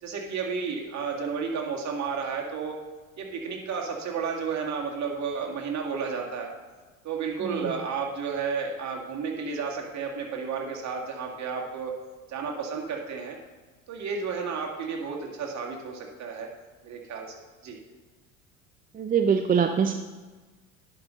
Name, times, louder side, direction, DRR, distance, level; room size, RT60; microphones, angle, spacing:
voice 1, 0.0-2.8 3.2-6.5 7.0-11.9 12.3-13.4 13.9-16.5 16.8-17.3 17.6-17.8, right 5 dB, 45° right, 0 dB, 2.1 m, -32 dB
voice 2, 7.4-7.8 18.9-19.9, right 7 dB, 20° right, 6 dB, 0.5 m, -24 dB
10.5 x 5.4 x 3.9 m, 1.3 s
hypercardioid pair, 70°, 40 cm